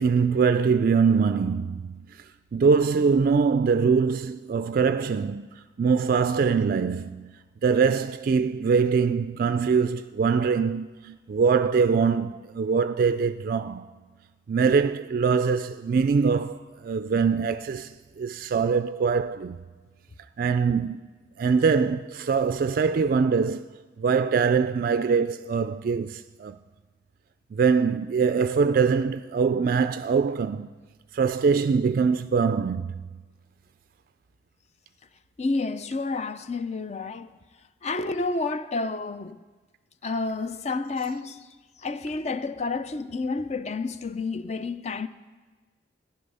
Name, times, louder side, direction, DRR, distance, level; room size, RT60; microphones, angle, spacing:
voice 1, 0.0-2.1 2.5-13.9 14.5-19.6 20.4-21.1 21.4-23.7 24.0-26.6 27.5-30.7 31.1-33.2, right 5 dB, 50° right, 0.3 m, -23 dB
voice 2, 35.4-37.3 37.8-39.4 40.0-41.5 41.8-45.1, left 3 dB, 35° left, 0.5 m, -30 dB
14.5 x 10.5 x 5.5 m
head